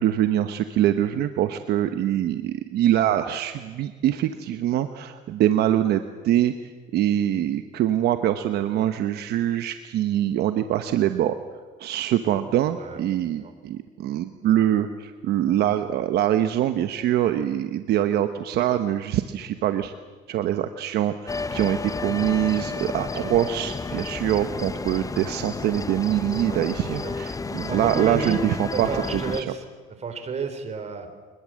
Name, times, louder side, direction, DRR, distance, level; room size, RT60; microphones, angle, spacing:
voice 1, 0.0-6.5 6.9-11.4 11.8-19.9 20.3-29.5, right 11 dB, 75° right, 9 dB, 1.1 m, -24 dB
sound 1, 21.3-29.4, left 4 dB, 20° left, 0.9 m, -32 dB
voice 2, 27.7-29.6 30.0-31.1, right 4 dB, 40° right, 8 dB, 3.8 m, -31 dB
24.0 x 21.0 x 7.7 m, 1.4 s
cardioid pair, 110°, 17 cm